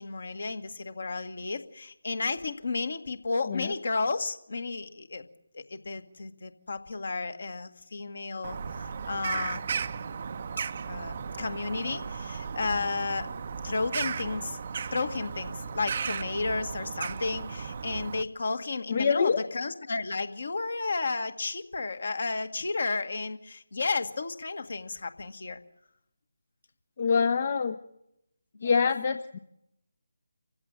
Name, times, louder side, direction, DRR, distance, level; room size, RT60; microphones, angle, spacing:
voice 1, 0.0-5.3 5.5-9.7 10.9-13.3 13.6-14.6 14.9-25.6 28.6-28.7, left 3 dB, 55° left, 9 dB, 1.8 m, -32 dB
Bird vocalization bird call bird song, 8.4-18.2, right 6 dB, 40° right, 0.8 m, -35 dB
voice 2, 18.9-19.4 27.0-27.8 28.6-29.4, left 5 dB, 40° left, 9 dB, 0.9 m, -25 dB
27.0 x 15.5 x 8.9 m, 0.84 s
figure-of-eight pair, 150°, 0 cm